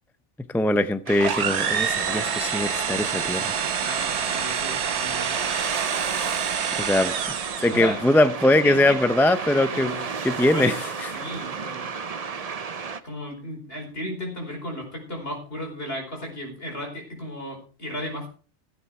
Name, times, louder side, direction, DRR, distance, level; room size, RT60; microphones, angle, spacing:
voice 1, 0.5-3.5 6.0-6.1 6.8-9.9 10.2-10.7 11.0-11.1, left 1 dB, 5° left, 0.4 m, -22 dB
sound 1, 1.1-13.0, right 5 dB, 35° right, 0.7 m, -33 dB
sound 2, 1.2-7.9, right 7 dB, 70° right, 1.2 m, -27 dB
voice 2, 3.8-5.4 7.7-8.0 8.6-9.0 9.6-10.1 10.4-11.9 13.0-18.3, equal, 55° left, 5.3 m, -34 dB
16.0 x 8.4 x 4.8 m
omnidirectional pair, 1.2 m